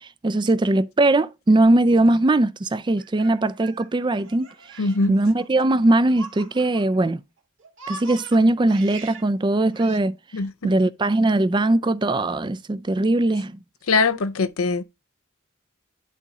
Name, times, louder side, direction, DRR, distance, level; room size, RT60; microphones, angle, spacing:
voice 1, 0.2-4.5 5.1-7.2 7.9-10.2 10.6-13.5, right 2 dB, 20° right, 0.4 m, -20 dB
Laughter, 3.0-7.1 7.4-9.3 9.7-10.0, right 3 dB, 60° right, 2.3 m, -42 dB
voice 2, 4.8-5.2 10.3-10.7 13.9-14.8, left 4 dB, 90° left, 0.7 m, -22 dB
11.0 x 3.7 x 4.1 m
head